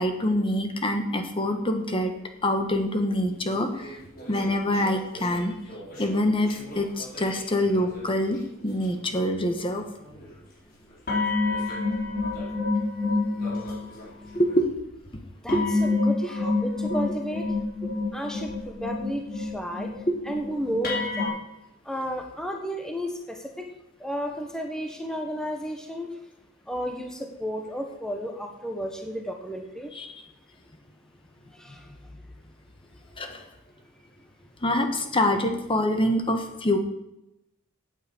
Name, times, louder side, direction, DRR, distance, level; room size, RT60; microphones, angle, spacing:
voice 1, 0.0-2.1 2.4-4.0 4.3-5.5 6.0-8.4 8.6-9.8 14.3-14.6 15.5-15.6 20.1-20.2 29.9-30.1 33.2-33.4 34.6-36.8, left 1 dB, 25° left, 5 dB, 1.2 m, -25 dB
sound 1, 3.3-8.5 8.8-9.1 9.7-10.3 11.1-14.6 15.5-21.3, left 3 dB, 45° left, 4.2 m, -29 dB
voice 2, 15.4-17.5 18.1-19.9 20.2-21.4 21.8-23.7 24.0-26.1 26.7-29.9 31.6-31.8, equal, 5° left, 2 dB, 1.1 m, -32 dB
9.1 x 8.7 x 8.4 m, 0.88 s
head